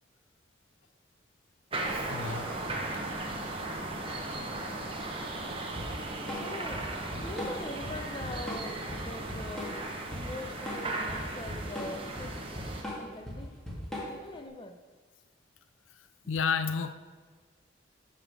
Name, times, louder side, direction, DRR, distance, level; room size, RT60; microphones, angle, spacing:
sound 1, 1.7-12.8, right 2 dB, 30° right, 1.0 m, -37 dB
voice 1, 1.9-3.3 15.9-16.9, left 6 dB, 85° left, 12 dB, 0.4 m, -33 dB
Drum kit / Drum, 5.8-14.4, equal, 5° left, 1.8 m, -39 dB
voice 2, 6.3-6.9 7.1-9.8 10.2-12.4 13.0-13.6 14.0-14.8 16.2-16.3, left 2 dB, 25° left, 6 dB, 0.6 m, -43 dB
11.0 x 5.6 x 4.6 m, 1.4 s
head